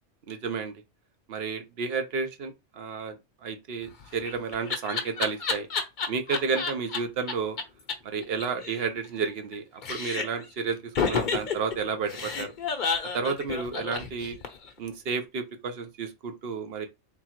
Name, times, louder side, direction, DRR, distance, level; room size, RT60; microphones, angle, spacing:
voice 1, 0.3-0.7 1.3-5.7 6.1-7.6 8.0-10.8 11.0-12.5 13.1-14.4 14.8-16.9, right 5 dB, 60° right, 1.0 m, -31 dB
Laughter, 3.9-7.0 7.3-7.4 7.6-7.7 7.9-8.0 8.2-9.6 9.8-10.5 11.0-14.7, left 5 dB, 45° left, 0.8 m, -30 dB
3.7 x 2.4 x 4.4 m
omnidirectional pair, 1.2 m